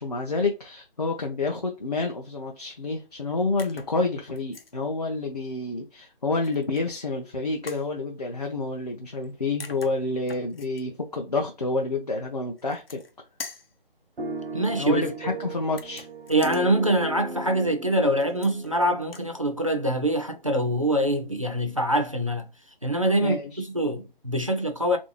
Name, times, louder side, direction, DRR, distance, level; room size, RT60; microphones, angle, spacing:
voice 1, 0.0-13.0 14.8-16.1 23.2-23.6, left 3 dB, 45° left, 0.5 m, -29 dB
sound 1, 3.6-4.0 4.3-4.7 6.4-7.0 7.7-7.9 9.2-9.3 9.6-10.8 12.6-13.1 13.4-13.7 15.7-16.6 18.2-18.7 19.0-19.3, left 4 dB, 75° left, 0.8 m, -43 dB
sound 2, 14.2-20.2, right 2 dB, 80° right, 0.8 m, -37 dB
voice 2, 14.5-15.1 16.3-22.5 22.8-25.0, right 1 dB, 35° right, 0.4 m, -24 dB
3.1 x 2.6 x 2.9 m
figure-of-eight pair, 175°, 29 cm